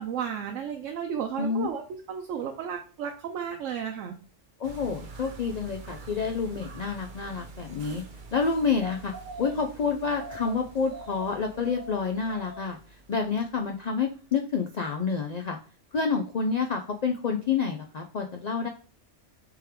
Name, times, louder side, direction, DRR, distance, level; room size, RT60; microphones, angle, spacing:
voice 1, 0.0-4.2, right 8 dB, 80° right, 3 dB, 0.9 m, -33 dB
voice 2, 1.4-1.7 4.6-8.0 8.3-9.1 9.4-12.8 13.1-15.6 15.9-18.7, left 5 dB, 80° left, 4 dB, 0.3 m, -28 dB
sound 1, 4.6-13.9 14.1-14.2, right 2 dB, 45° right, 0.8 m, -44 dB
3.5 x 3.3 x 4.4 m, 0.38 s
omnidirectional pair, 1.3 m